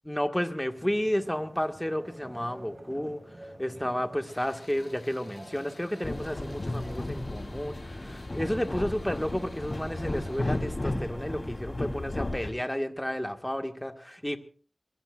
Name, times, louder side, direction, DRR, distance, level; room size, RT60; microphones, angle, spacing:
voice 1, 0.1-3.2 3.6-14.4, equal, 10° left, 5 dB, 1.8 m, -32 dB
sound 1, 0.8-12.4, right 1 dB, 35° right, 6.4 m, -49 dB
sound 2, 4.2-10.9, left 2 dB, 85° left, 5.0 m, -55 dB
sound 3, 6.0-12.5, left 2 dB, 45° left, 3.5 m, -34 dB
25.5 x 20.5 x 2.5 m, 0.39 s
wide cardioid pair, 55°, 0 cm